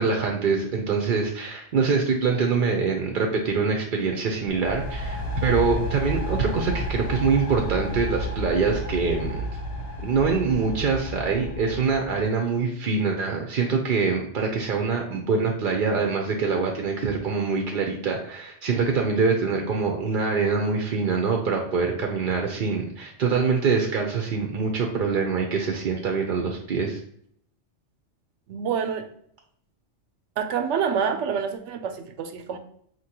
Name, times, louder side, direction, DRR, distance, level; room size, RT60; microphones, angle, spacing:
voice 1, 0.0-9.4 10.0-27.0, right 5 dB, 55° right, 2 dB, 0.7 m, -24 dB
sound 1, 4.5-12.2, equal, 60° left, 0.9 m, -31 dB
voice 2, 28.5-29.1 30.4-32.6, right 7 dB, 85° right, 7 dB, 0.9 m, -27 dB
5.2 x 2.8 x 2.8 m, 0.66 s
omnidirectional pair, 1.2 m